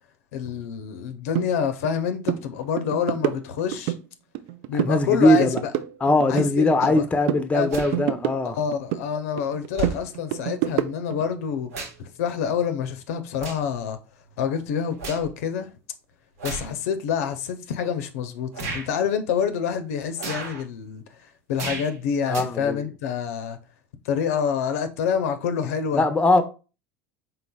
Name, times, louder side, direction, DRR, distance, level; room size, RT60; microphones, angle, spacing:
voice 1, 0.3-3.9 4.7-5.5 6.3-7.0 7.5-7.7 8.4-11.7 12.0-14.0 14.4-15.7 16.4-21.0 21.5-23.6 24.0-26.0, left 7 dB, 75° left, 0.5 m, -27 dB
sound 1, 1.3-1.5 1.8-2.0 2.2-2.4 2.8-4.0 4.3-5.0 5.3-7.0 7.3-9.1 9.4-11.2, right 13 dB, 65° right, 0.4 m, -28 dB
voice 2, 4.7-5.6 6.0-8.6 22.3-22.8 25.9-26.4, left 1 dB, 15° left, 0.6 m, -20 dB
sound 2, 7.7-8.0 9.0-9.1 9.7-10.0 11.2-12.1 12.5-12.7 13.3-13.8 14.2-15.3 16.4-16.7 17.4-17.5 18.5-18.9 20.2-20.6 21.5-21.9 22.3-22.4, right 3 dB, 80° right, 1.2 m, -34 dB
3.9 x 3.9 x 2.2 m
hypercardioid pair, 90°, 8 cm